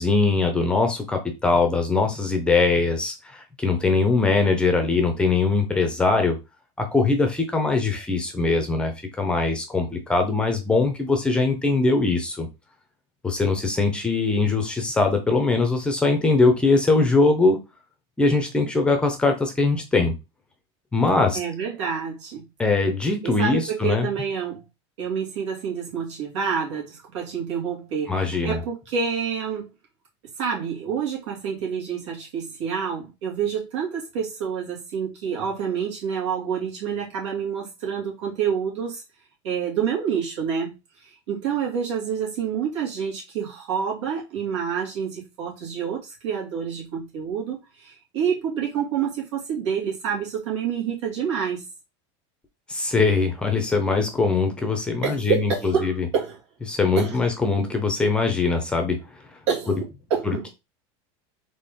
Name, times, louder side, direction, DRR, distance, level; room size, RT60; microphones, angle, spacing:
voice 1, 0.0-6.4 6.8-8.9 9.2-12.5 13.2-17.6 18.2-20.1 20.9-21.4 22.6-24.1 28.1-28.6 52.7-56.1 56.7-59.0 60.3-60.5, left 3 dB, 5° left, 0.6 m, -21 dB
voice 2, 21.3-22.5 23.2-24.6 25.0-29.7 30.4-39.0 39.4-40.7 41.0-51.6 55.0-56.4 57.0-57.2 59.5-59.8 60.1-60.5, right 7 dB, 90° right, 2.5 m, -28 dB
4.2 x 3.4 x 3.5 m
supercardioid pair, 170°, 14 cm